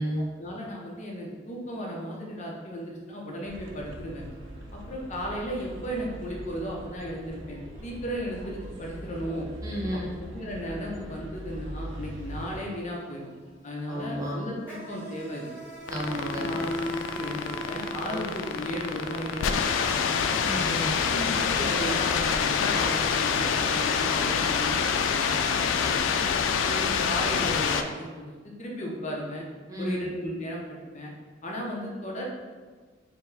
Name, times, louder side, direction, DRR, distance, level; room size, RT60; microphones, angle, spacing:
voice 1, 0.3-4.2 4.7-9.5 9.9-10.0 10.3-13.3 13.6-15.5 16.3-19.9 20.2-20.3 20.9-26.3 26.7-29.4 29.8-31.1 31.4-32.2, equal, 40° left, -2 dB, 0.6 m, -35 dB
sound 1, 3.4-12.6, equal, 80° right, 0.6 m, -41 dB
voice 2, 9.6-10.2 13.9-14.4 15.9-16.5 18.1-18.3 20.4-20.9 29.7-30.0, equal, 20° right, -4 dB, 0.6 m, -32 dB
Insect, 12.0-12.2 12.4-23.4, equal, 10° left, 1.4 m, -41 dB
sound 2, 15.9-27.8, left 6 dB, 85° left, 0.3 m, -26 dB
4.6 x 2.1 x 3.9 m, 1.4 s
head